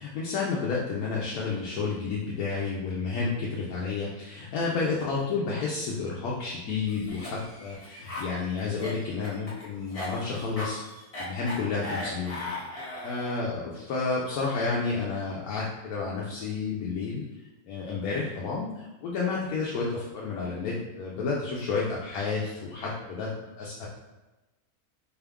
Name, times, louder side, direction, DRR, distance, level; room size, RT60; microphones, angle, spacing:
voice 1, 0.0-10.8 11.2-12.4 12.7-17.2 17.7-23.3 23.6-23.9, left 4 dB, 75° left, -4 dB, 1.1 m, -31 dB
Cough, 6.9-13.5, left 2 dB, 30° left, 0.7 m, -38 dB
4.5 x 2.4 x 3.4 m, 1.1 s
omnidirectional pair, 1.6 m